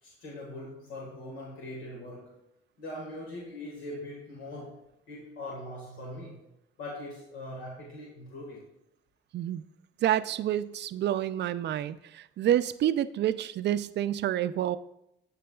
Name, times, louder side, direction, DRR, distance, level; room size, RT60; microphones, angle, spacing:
voice 1, 0.0-2.4 2.8-6.4 6.8-8.6, left 1 dB, 85° left, -4 dB, 1.7 m, -41 dB
voice 2, 9.3-9.6 10.0-14.8, right 11 dB, 60° right, 14 dB, 0.4 m, -28 dB
12.5 x 4.6 x 2.3 m, 0.81 s
cardioid pair, 90°, 20 cm